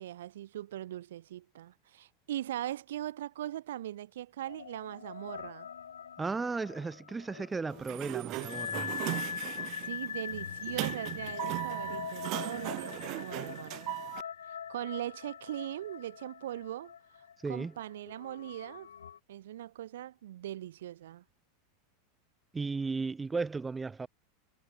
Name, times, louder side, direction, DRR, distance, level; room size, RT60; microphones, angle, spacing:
voice 1, 0.0-5.7 9.7-13.9 14.7-16.9 17.5-18.9 19.3-21.2, right 12 dB, 70° right, 6.6 m, -40 dB
sound 1, 4.5-19.2, left 8 dB, 80° left, 1.5 m, -42 dB
voice 2, 6.2-8.9 17.4-17.7 22.5-24.1, right 4 dB, 15° right, 3.5 m, -35 dB
Sliding door, 7.7-14.2, right 21 dB, 50° right, 0.7 m, -38 dB
hypercardioid pair, 90°, 0 cm